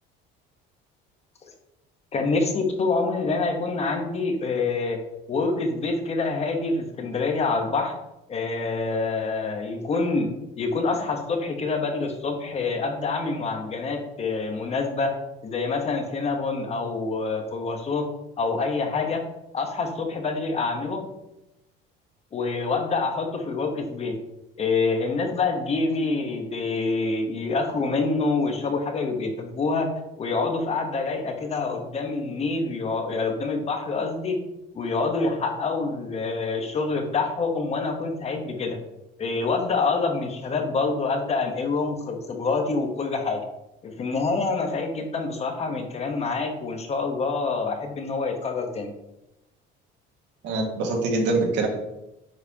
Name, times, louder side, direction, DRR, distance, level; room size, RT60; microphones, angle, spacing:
voice 1, 2.1-5.0 5.3-7.9 8.3-10.3 10.6-18.1 18.4-19.3 19.5-21.0 22.3-24.2 24.6-29.9 30.2-34.4 34.7-38.8 39.2-43.4 43.8-48.9, left 3 dB, 30° left, 4 dB, 1.1 m, -26 dB
voice 2, 50.4-51.7, right 3 dB, 70° right, 0 dB, 1.8 m, -24 dB
9.3 x 4.8 x 2.9 m, 0.91 s
cardioid pair, 130°, 20 cm